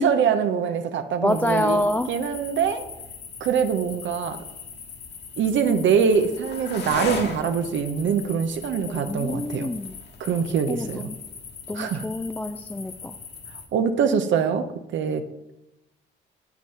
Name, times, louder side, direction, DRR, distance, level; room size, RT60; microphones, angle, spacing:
voice 1, 0.0-1.8 2.1-2.8 3.4-4.4 5.4-9.7 10.2-11.1 11.7-12.0 13.7-14.6 14.9-15.3, right 6 dB, 70° right, 8 dB, 0.8 m, -23 dB
voice 2, 1.2-2.1 8.9-10.0 10.7-11.2 11.7-13.1, left 1 dB, 10° left, 8 dB, 0.4 m, -27 dB
sound 1, 1.3-13.7, left 4 dB, 60° left, 1.9 m, -38 dB
7.8 x 6.0 x 5.5 m, 0.92 s
cardioid pair, 90°, 20 cm